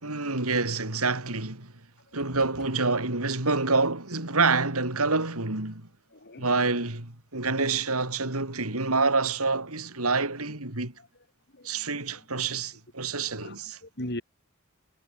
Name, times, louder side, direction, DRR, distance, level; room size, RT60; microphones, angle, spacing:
voice 1, 0.0-1.7 2.1-5.9 6.4-10.9 11.6-13.8, right 3 dB, 80° right, 4.1 m, -27 dB
voice 2, 6.1-6.7 11.5-11.9 13.2-14.2, left 1 dB, 50° left, 6.5 m, -40 dB
head